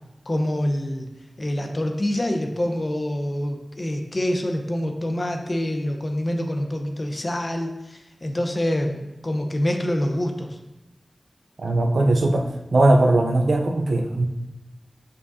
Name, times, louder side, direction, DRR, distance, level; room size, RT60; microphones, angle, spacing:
voice 1, 0.3-1.1 1.4-10.6, left 1 dB, 45° left, 4 dB, 0.9 m, -26 dB
voice 2, 11.6-14.3, right 2 dB, 85° right, 3 dB, 0.6 m, -19 dB
7.0 x 5.2 x 2.7 m, 1.0 s
cardioid pair, 45°, 0 cm